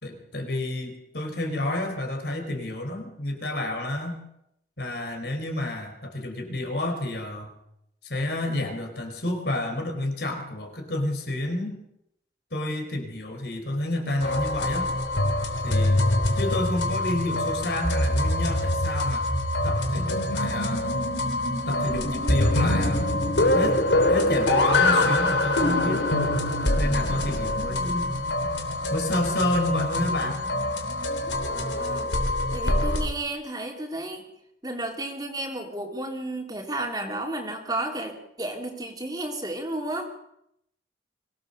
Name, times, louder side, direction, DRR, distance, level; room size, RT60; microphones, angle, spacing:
voice 1, 0.0-4.2 4.8-7.5 8.0-11.8 12.5-14.9 15.6-16.1 16.3-19.3 19.6-21.0 21.7-23.1 23.5-23.8 24.1-26.1 26.8-28.1 28.9-30.4, left 1 dB, 60° left, 5 dB, 4.4 m, -30 dB
sound 1, 14.2-33.1, left 1 dB, 80° left, 3.5 m, -24 dB
voice 2, 31.4-32.1 32.5-34.2 34.6-40.1, right 1 dB, 20° right, 2 dB, 3.1 m, -32 dB
24.0 x 17.5 x 6.8 m, 0.78 s
head